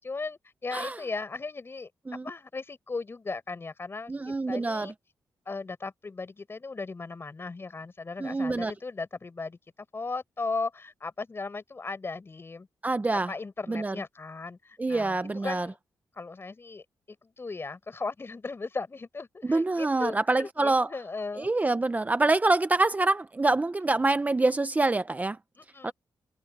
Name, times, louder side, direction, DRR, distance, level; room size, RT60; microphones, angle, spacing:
voice 1, 0.0-4.1 4.5-4.9 5.5-9.6 9.9-12.7 13.1-15.8 16.1-21.5 25.6-25.9, left 3 dB, 35° left, 6.2 m, -37 dB
voice 2, 4.1-4.9 8.2-8.7 12.8-13.3 13.7-13.9 14.8-15.7 19.5-20.9 21.4-25.4 25.8-25.9, right 2 dB, 25° right, 0.8 m, -26 dB
open air
cardioid pair, 80°, 7 cm